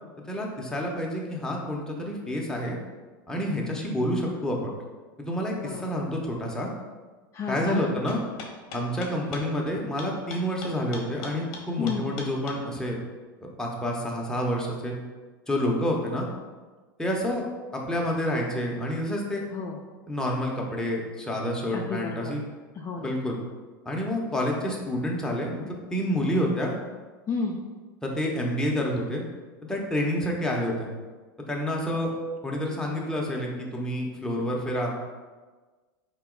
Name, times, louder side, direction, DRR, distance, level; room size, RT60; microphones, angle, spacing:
voice 1, 0.3-2.8 3.3-4.7 5.2-6.7 7.5-8.2 8.7-13.0 13.4-14.9 15.5-16.3 17.0-17.4 17.7-19.4 20.1-22.4 23.0-23.4 23.8-25.6 25.9-26.7 28.0-29.2 29.6-30.9 31.5-32.1 32.4-34.9, equal, 5° left, -2 dB, 0.8 m, -28 dB
voice 2, 5.6-6.0 7.3-7.9 11.8-12.1 19.5-19.8 21.7-22.4 22.7-23.2 27.3-27.6, left 5 dB, 25° left, -2 dB, 0.4 m, -32 dB
sound 1, 8.1-12.6, left 4 dB, 50° left, 0.9 m, -39 dB
4.0 x 3.0 x 3.7 m, 1.3 s
hypercardioid pair, 110°, 12 cm